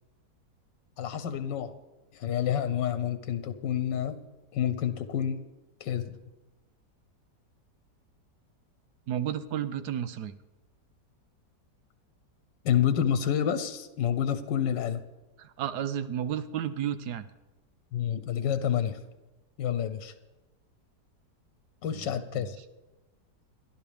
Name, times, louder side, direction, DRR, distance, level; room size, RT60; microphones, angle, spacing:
voice 1, 1.0-1.7 2.1-4.2 4.5-5.4 5.8-6.2 12.6-15.0 17.9-19.0 19.6-20.1 21.8-22.6, left 9 dB, 85° left, 11 dB, 1.5 m, -28 dB
voice 2, 9.1-10.3 15.4-17.3 22.4-22.5, right 10 dB, 70° right, 12 dB, 1.2 m, -32 dB
29.5 x 11.5 x 3.5 m, 1.1 s
omnidirectional pair, 1.9 m